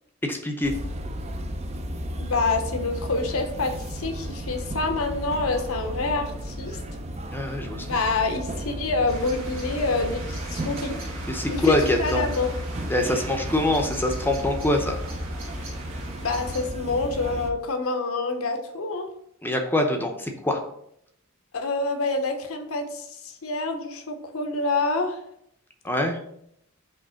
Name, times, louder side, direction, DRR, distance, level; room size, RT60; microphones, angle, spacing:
voice 1, 0.2-0.7 7.3-7.9 11.3-12.3 12.9-15.0 19.4-20.6 25.8-26.2, left 1 dB, 10° left, 4 dB, 0.7 m, -24 dB
sound 1, 0.6-17.5, equal, 30° right, 0.5 m, -33 dB
voice 2, 2.2-6.8 7.8-11.0 11.5-12.5 16.2-19.1 21.5-25.2, left 3 dB, 80° left, 6 dB, 0.9 m, -27 dB
sound 2, 9.1-16.7, right 3 dB, 65° right, 1.5 m, -41 dB
5.3 x 3.2 x 5.6 m, 0.72 s
head